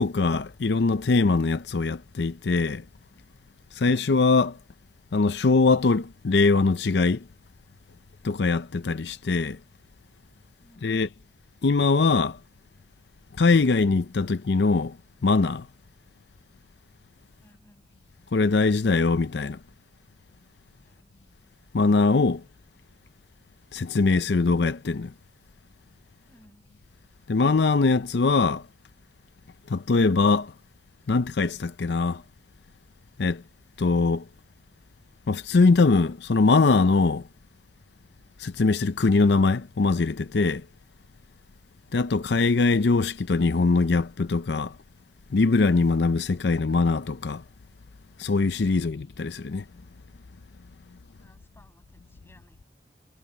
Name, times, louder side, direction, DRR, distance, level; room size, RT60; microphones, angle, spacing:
voice 1, 0.0-2.8 3.7-4.6 5.1-7.2 8.2-9.6 10.8-11.1 11.6-12.4 13.4-15.0 15.2-15.7 18.3-19.6 21.7-22.4 23.7-25.1 27.3-28.6 29.7-30.5 31.1-32.2 33.2-33.4 33.8-34.2 35.3-37.2 38.4-40.6 41.9-44.8 45.3-47.4 48.2-49.6, left 3 dB, 75° left, 0.6 m, -22 dB
voice 2, 10.6-11.0 17.4-17.9 20.8-21.1 26.3-26.6 48.7-49.0 51.1-52.7, equal, 15° left, 7.7 m, -59 dB
head